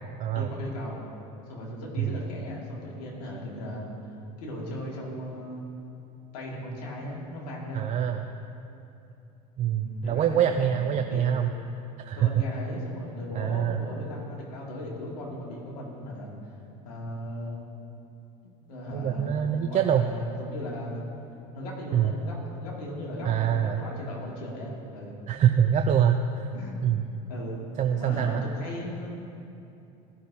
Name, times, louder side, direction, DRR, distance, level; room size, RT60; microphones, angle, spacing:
voice 1, 0.3-1.0 1.5-5.6 6.3-7.9 9.8-11.3 12.2-16.3 16.8-17.6 18.4-21.0 21.5-25.1 26.5-27.0 27.3-27.6 27.9-29.2, left 1 dB, 80° left, -3 dB, 2.2 m, -37 dB
voice 2, 7.7-8.3 9.6-11.5 12.0-12.4 13.3-13.8 18.9-20.1 21.9-22.1 23.2-23.8 25.3-26.5 26.8-27.0 27.8-28.4, right 9 dB, 35° right, 6 dB, 0.5 m, -24 dB
15.0 x 6.2 x 2.8 m, 2.7 s
hypercardioid pair, 85°, 20 cm